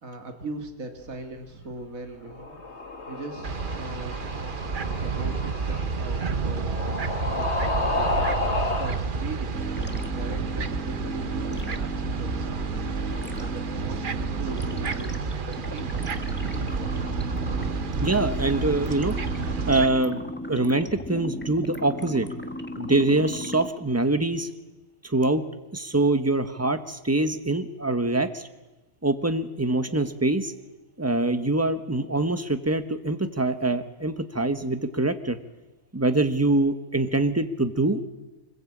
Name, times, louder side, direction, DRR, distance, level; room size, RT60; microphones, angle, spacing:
voice 1, 0.0-2.6 3.0-8.1 8.6-12.7 13.3-17.0, right 3 dB, 70° right, 4 dB, 2.6 m, -40 dB
sound 1, 2.3-9.0, left 2 dB, 50° left, 2.6 m, -31 dB
sound 2, 3.4-19.9, right 5 dB, 40° right, 1.0 m, -30 dB
sound 3, 9.5-23.7, equal, 10° left, 1.3 m, -36 dB
voice 2, 18.0-19.2 19.7-20.2 20.5-22.3 22.8-24.5 25.0-25.4 25.7-28.5 29.0-30.5 31.0-35.4 35.9-38.1, right 2 dB, 10° right, 9 dB, 1.2 m, -24 dB
25.0 x 21.0 x 8.7 m, 1.1 s
omnidirectional pair, 1.5 m